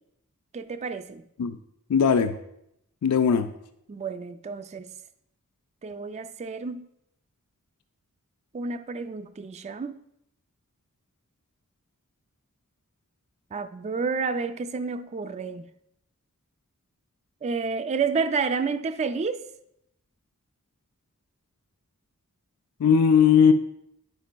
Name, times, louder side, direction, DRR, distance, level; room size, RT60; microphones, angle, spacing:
voice 1, 0.5-1.2 3.9-4.9 5.8-6.9 8.5-10.0 13.5-15.7 17.4-19.5, right 5 dB, 30° right, 0.3 m, -30 dB
voice 2, 1.9-2.3 3.0-3.5 22.8-23.5, left 7 dB, 85° left, 0.4 m, -18 dB
10.5 x 5.0 x 2.2 m
head